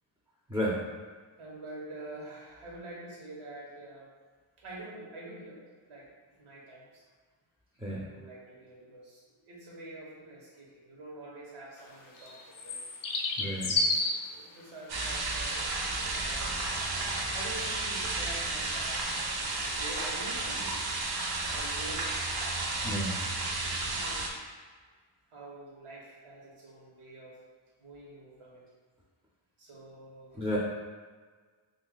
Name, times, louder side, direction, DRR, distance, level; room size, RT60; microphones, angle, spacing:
voice 1, 0.5-0.8 7.8-8.0 13.4-13.8 22.8-23.3 30.3-30.6, equal, 5° right, -4 dB, 0.5 m, -32 dB
voice 2, 1.4-4.1 4.6-5.6 5.9-6.1 6.4-7.0 7.9-12.8 13.6-15.5 15.8-16.8 17.3-20.9 21.5-22.2 22.5-22.8 23.9-24.2 25.3-27.4 27.8-28.6 29.6-30.4, right 2 dB, 85° right, -4 dB, 1.1 m, -46 dB
sound 1, 11.8-23.3, left 2 dB, 45° left, 0.5 m, -36 dB
sound 2, 14.9-24.3, right 2 dB, 50° right, 0.6 m, -32 dB
2.7 x 2.5 x 3.8 m, 1.5 s
cardioid pair, 70°, 50 cm